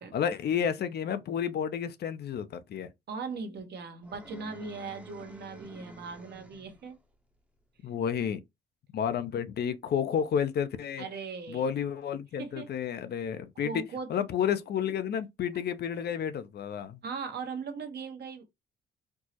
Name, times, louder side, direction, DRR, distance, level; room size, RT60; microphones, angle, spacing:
voice 1, 0.1-2.9 7.8-8.4 8.9-11.0 11.5-13.8 14.1-17.0, left 8 dB, 55° left, 0.5 m, -31 dB
voice 2, 3.1-7.0 11.0-11.8 12.4-12.7 13.6-14.1 14.8-15.0 17.0-18.4, right 5 dB, 55° right, 0.9 m, -39 dB
sound 1, 4.0-6.9, right 1 dB, 5° right, 0.7 m, -49 dB
4.4 x 2.0 x 2.8 m
cardioid pair, 90°, 20 cm